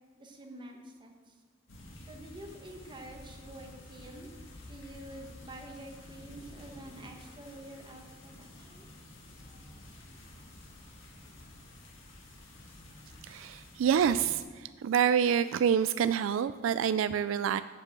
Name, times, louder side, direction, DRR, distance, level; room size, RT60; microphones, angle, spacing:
voice 1, 0.1-1.3 2.1-4.3 4.7-8.9, right 1 dB, 25° right, 2 dB, 1.4 m, -48 dB
sound 1, 1.7-14.4, left 1 dB, 70° left, 2.0 m, -50 dB
voice 2, 13.2-17.6, right 8 dB, 75° right, 13 dB, 0.3 m, -27 dB
8.3 x 7.4 x 7.6 m, 1.4 s
head